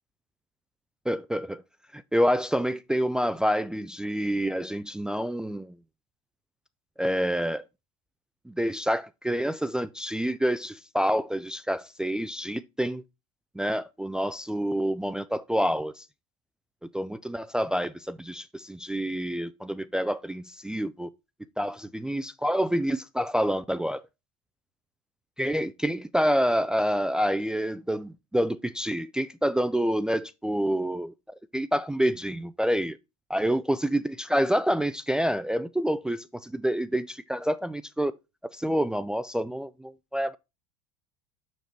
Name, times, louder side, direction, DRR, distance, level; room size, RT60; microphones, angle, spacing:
voice 1, 1.1-1.6 1.9-5.7 7.0-7.6 8.5-13.0 13.6-16.0 16.9-21.1 21.6-24.0 25.4-31.1 31.5-33.0 33.3-38.1 38.5-40.4, equal, 5° right, 0.3 m, -27 dB
6.7 x 6.5 x 3.0 m
figure-of-eight pair, 75°, 18 cm